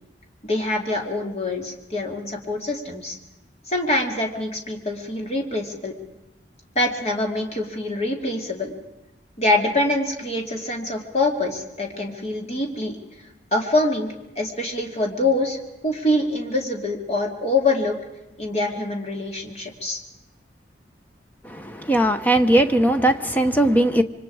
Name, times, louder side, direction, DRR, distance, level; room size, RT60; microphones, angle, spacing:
voice 1, 0.4-3.2 3.7-5.9 6.7-8.7 9.4-13.0 13.5-15.6 15.8-18.0 18.4-20.0, left 2 dB, 35° left, 2 dB, 2.7 m, -25 dB
voice 2, 21.4-24.0, right 1 dB, 10° left, 8 dB, 0.9 m, -19 dB
26.5 x 24.5 x 4.9 m, 0.94 s
head